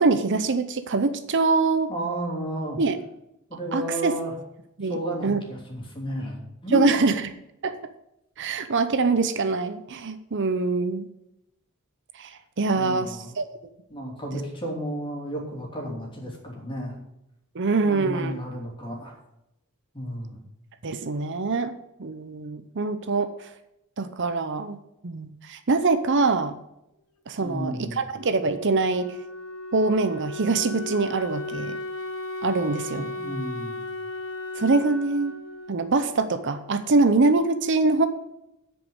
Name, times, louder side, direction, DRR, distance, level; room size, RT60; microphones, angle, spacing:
voice 1, 0.0-1.9 2.8-3.0 3.7-4.2 4.8-5.0 5.2-5.4 6.7-7.2 7.6-7.8 8.4-11.0 12.2-13.4 17.5-18.3 20.8-21.7 22.0-23.5 24.0-24.8 25.0-26.5 27.3-29.1 29.7-31.8 32.4-33.1 34.6-35.3 35.7-38.1, right 3 dB, 55° right, 10 dB, 0.7 m, -24 dB
voice 2, 1.9-2.8 3.5-4.3 4.8-6.9 12.7-13.3 13.9-17.0 17.8-19.2 19.9-20.4 27.4-28.0 32.9-33.9, equal, 20° left, -1 dB, 2.9 m, -32 dB
Wind instrument woodwind instrument, 28.2-36.9, left 2 dB, 75° left, 1.3 m, -36 dB
10.0 x 5.3 x 7.9 m, 0.85 s
head